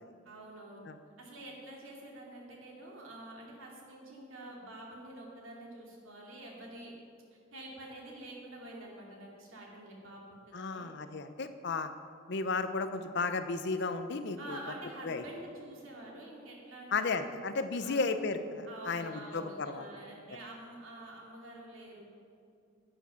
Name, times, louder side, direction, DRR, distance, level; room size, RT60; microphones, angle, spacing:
voice 1, 0.2-0.8 1.2-6.9 7.5-10.9 14.4-17.4 17.8-18.1 18.7-22.0, right 1 dB, 70° right, -2 dB, 2.5 m, -47 dB
voice 2, 10.5-11.9 12.3-14.6 15.0-15.2 16.9-19.9, left 4 dB, 55° left, 10 dB, 0.6 m, -34 dB
11.0 x 8.3 x 5.7 m, 2.4 s
head